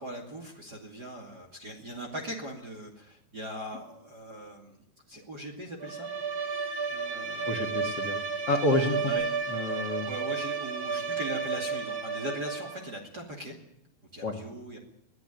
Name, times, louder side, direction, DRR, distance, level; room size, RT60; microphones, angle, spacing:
voice 1, 0.0-6.1 6.9-8.2 9.1-9.3 10.1-13.6 14.1-14.8, right 1 dB, 30° right, 2 dB, 2.4 m, -40 dB
Bowed string instrument, 5.8-12.9, right 5 dB, 90° right, 0.8 m, -32 dB
voice 2, 7.5-8.2 8.5-9.1 9.5-10.1 14.2-14.3, left 2 dB, 45° left, 1 dB, 2.5 m, -29 dB
21.0 x 14.5 x 9.3 m, 0.78 s
omnidirectional pair, 4.7 m